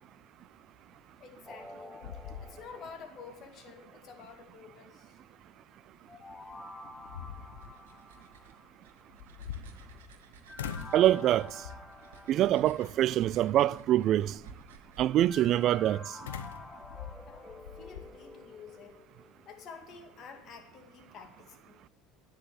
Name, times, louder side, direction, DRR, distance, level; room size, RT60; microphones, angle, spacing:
voice 1, 1.2-5.2 17.3-19.0 19.4-21.8, left 5 dB, 50° left, 2.2 m, -50 dB
sound 1, 1.4-1.7 2.0-3.0 3.4-3.5 6.2-6.3 6.8-7.8 9.1-10.2 10.6-11.1 11.6-12.0 12.8-13.3 16.3-18.1, left 8 dB, 80° left, 0.8 m, -43 dB
sound 2, 1.5-3.8 6.1-9.0 10.5-13.2 15.3-19.8 20.1-20.2, left 2 dB, 10° left, 1.6 m, -49 dB
sound 3, 7.4-16.3, right 4 dB, 75° right, 1.6 m, -55 dB
voice 2, 10.9-11.6 12.3-14.4 15.0-16.2, right 13 dB, 50° right, 0.3 m, -25 dB
10.5 x 10.0 x 7.7 m
hypercardioid pair, 70°, 0 cm